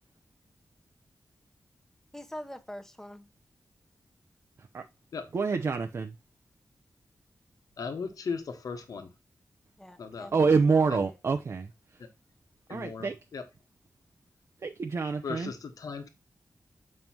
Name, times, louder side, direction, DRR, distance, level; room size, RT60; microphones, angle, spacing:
voice 1, 2.1-3.3 9.8-11.2, left 1 dB, 5° left, 0.9 m, -44 dB
voice 2, 5.3-6.1 10.3-11.7 12.7-13.2 14.6-15.5, right 4 dB, 50° right, 0.6 m, -26 dB
voice 3, 7.8-9.1 10.0-10.3 10.9-11.0 12.7-13.5 15.2-16.1, left 5 dB, 90° left, 1.3 m, -37 dB
7.5 x 5.4 x 2.9 m
wide cardioid pair, 130°, 6 cm